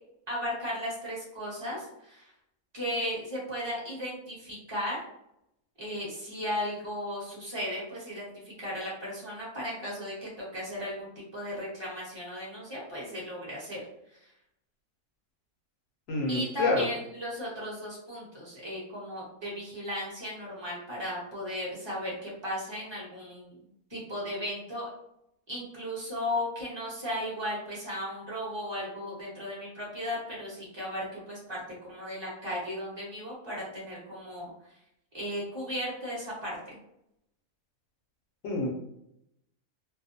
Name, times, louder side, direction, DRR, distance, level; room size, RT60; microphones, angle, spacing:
voice 1, 0.3-2.3 2.7-5.0 5.8-13.8 14.1-14.2 16.3-24.9 25.5-34.5 35.1-36.8, equal, 20° right, -6 dB, 0.9 m, -36 dB
voice 2, 16.1-16.9 38.4-38.7, left 2 dB, 65° left, -1 dB, 0.9 m, -27 dB
2.7 x 2.2 x 2.6 m, 0.80 s
omnidirectional pair, 1.6 m